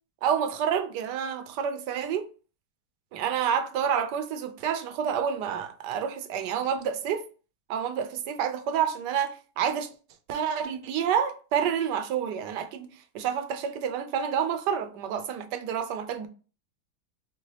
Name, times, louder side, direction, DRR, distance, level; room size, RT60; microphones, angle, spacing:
voice 1, 0.2-2.3 3.1-7.2 7.7-9.9 10.3-12.9 13.1-16.3, right 8 dB, 70° right, 1.1 m, -28 dB
5.5 x 2.4 x 3.1 m
omnidirectional pair, 2.1 m